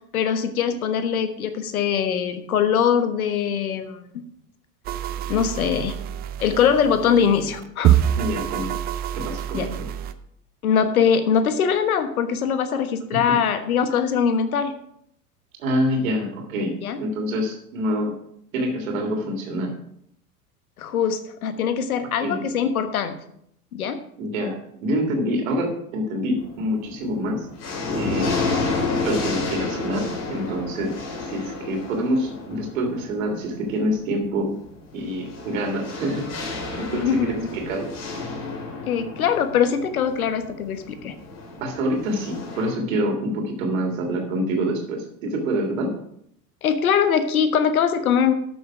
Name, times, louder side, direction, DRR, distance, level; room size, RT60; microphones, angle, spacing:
voice 1, 0.1-4.1 5.3-5.9 6.4-8.0 9.5-9.7 10.6-14.7 16.8-17.0 20.8-23.1 23.7-24.0 36.9-37.5 38.9-41.1 46.6-48.3, left 7 dB, 65° left, 10 dB, 1.4 m, -22 dB
sound 1, 4.8-10.1, right 11 dB, 20° right, 0.5 m, -25 dB
voice 2, 8.2-8.7 9.1-9.9 13.1-13.4 15.6-16.7 17.0-18.1 18.5-19.7 22.2-22.4 24.2-27.4 28.0-28.3 29.0-31.0 31.2-34.6 34.9-37.9 41.6-45.9, equal, 60° right, 3 dB, 3.2 m, -26 dB
sound 2, 26.4-26.9 27.3-42.7, left 3 dB, 35° left, 3.0 m, -31 dB
13.0 x 7.0 x 4.9 m, 0.71 s
figure-of-eight pair, 85°, 46 cm